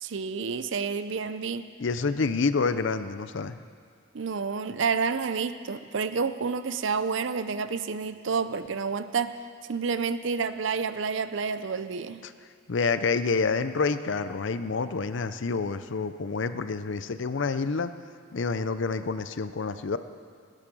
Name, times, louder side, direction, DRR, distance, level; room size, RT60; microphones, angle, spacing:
voice 1, 0.0-1.7 4.1-9.4 9.7-12.2, right 5 dB, 60° right, 12 dB, 0.5 m, -29 dB
voice 2, 1.8-3.6 12.2-12.3 12.7-17.9 18.3-20.0, left 4 dB, 60° left, 12 dB, 0.5 m, -28 dB
16.0 x 11.0 x 6.2 m, 2.1 s
head